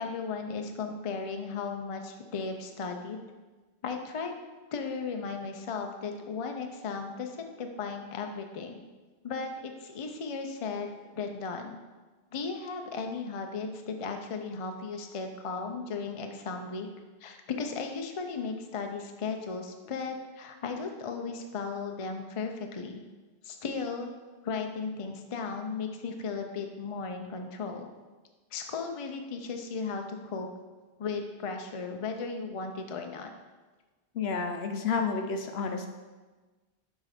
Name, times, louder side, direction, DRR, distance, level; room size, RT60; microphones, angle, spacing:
voice 1, 0.0-3.2 3.8-4.3 4.7-8.8 9.2-10.9 11.2-11.8 12.3-16.9 17.2-23.0 23.4-24.1 24.4-27.9 28.5-30.5 31.0-33.3, left 4 dB, 40° left, 4 dB, 0.5 m, -36 dB
voice 2, 34.1-35.9, left 5 dB, 70° left, 5 dB, 0.9 m, -30 dB
7.3 x 3.7 x 5.0 m, 1.3 s
omnidirectional pair, 1.1 m